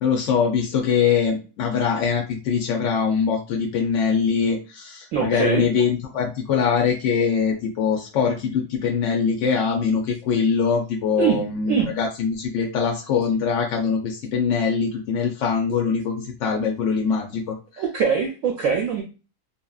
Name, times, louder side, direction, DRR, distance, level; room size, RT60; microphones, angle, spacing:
voice 1, 0.0-17.8, left 6 dB, 70° left, 0 dB, 0.7 m, -23 dB
voice 2, 5.1-5.7 11.2-11.4 11.7-11.9 17.8-19.0, right 6 dB, 70° right, 1 dB, 0.8 m, -22 dB
2.8 x 2.5 x 2.3 m, 0.32 s
omnidirectional pair, 1.7 m